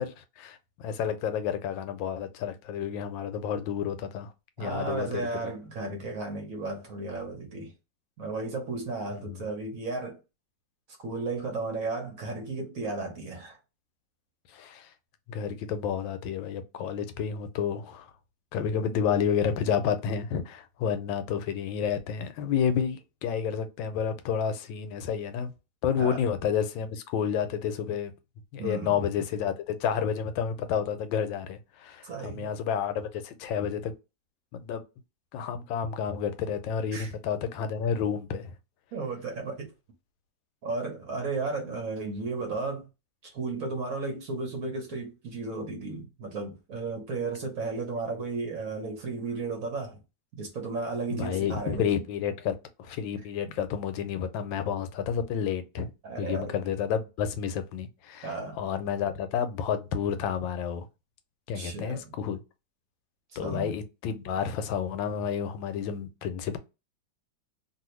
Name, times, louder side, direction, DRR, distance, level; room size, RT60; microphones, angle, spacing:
voice 1, 0.0-4.3 4.6-5.3 9.2-9.4 14.5-14.9 15.3-18.1 18.5-25.5 25.8-28.1 28.5-33.9 34.5-34.8 35.3-38.5 51.1-55.9 56.2-58.3 58.6-60.9 61.5-62.4 63.4-66.6, left 7 dB, 90° left, 1.4 m, -30 dB
voice 2, 4.6-7.7 8.2-10.2 11.0-13.6 26.0-26.2 28.6-29.0 32.0-32.5 36.9-37.1 38.9-39.7 40.6-42.9 43.2-50.0 50.4-51.9 56.0-56.5 58.2-58.6 61.5-62.0 63.4-63.7, right 3 dB, 55° right, 1.1 m, -34 dB
2.8 x 2.7 x 3.0 m
omnidirectional pair, 2.0 m